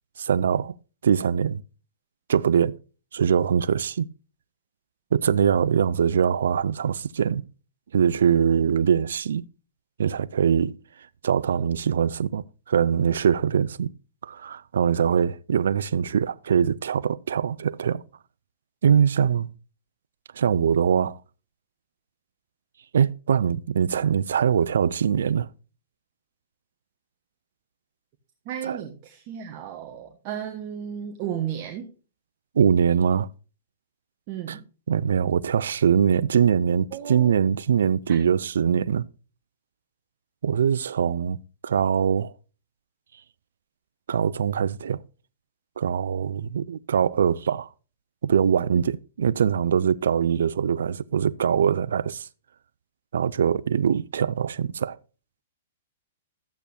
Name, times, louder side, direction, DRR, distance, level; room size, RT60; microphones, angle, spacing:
voice 1, 0.2-0.8 1.0-1.6 2.3-2.8 3.1-4.1 5.1-7.5 7.9-9.5 10.0-10.8 11.2-13.9 14.2-18.0 18.8-19.5 20.3-21.2 22.9-25.5 28.7-28.8 32.6-33.3 34.5-34.6 34.9-39.0 40.4-42.3 44.1-45.0 45.8-47.7 48.2-52.3 53.1-55.0, right 7 dB, 70° right, 0.4 m, -22 dB
voice 2, 28.4-31.9 34.3-34.6 36.9-37.3 38.1-38.2, right 9 dB, 45° right, 1.4 m, -34 dB
12.5 x 8.2 x 2.8 m
hypercardioid pair, 115°, 0 cm